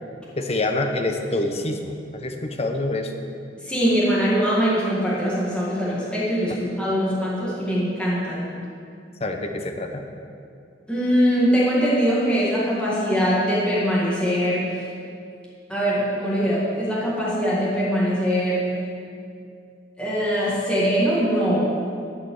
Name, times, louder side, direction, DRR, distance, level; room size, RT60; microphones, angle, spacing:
voice 1, 0.4-3.1 9.2-10.1, left 2 dB, 35° left, 5 dB, 0.9 m, -26 dB
voice 2, 3.6-8.5 10.9-14.7 15.7-18.7 20.0-21.7, equal, 5° left, -8 dB, 2.1 m, -22 dB
12.5 x 5.8 x 7.1 m, 2.4 s
head